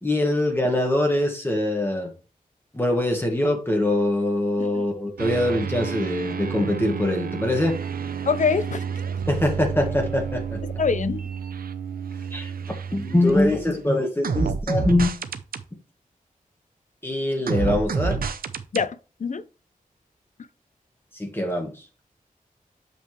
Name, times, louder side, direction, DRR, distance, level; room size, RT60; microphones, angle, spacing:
voice 1, 0.0-2.1 2.7-7.8 9.3-10.6 12.3-12.5 12.9-15.1 17.0-18.2 21.2-21.8, left 1 dB, 15° left, 1.8 m, -23 dB
sound 1, 5.2-13.7 14.2-15.6 17.5-18.9, right 6 dB, 90° right, 0.7 m, -30 dB
voice 2, 8.3-8.8 10.6-11.2 18.7-19.4, left 5 dB, 60° left, 0.6 m, -25 dB
7.2 x 5.3 x 3.1 m
wide cardioid pair, 75°, 15 cm